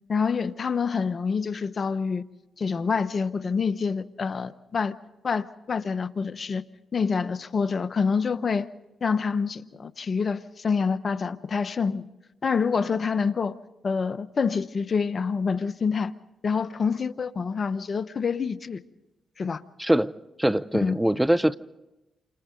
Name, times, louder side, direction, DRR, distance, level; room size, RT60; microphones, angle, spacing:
voice 1, 0.1-2.2 2.6-4.9 5.2-6.6 6.9-8.7 9.0-12.1 12.4-13.6 13.8-16.1 16.4-18.8 19.4-19.6 20.7-21.0, left 5 dB, 50° left, 1.0 m, -27 dB
voice 2, 19.8-20.1 20.4-21.6, right 1 dB, 10° right, 0.8 m, -22 dB
28.5 x 26.5 x 3.9 m
supercardioid pair, 50°, 0 cm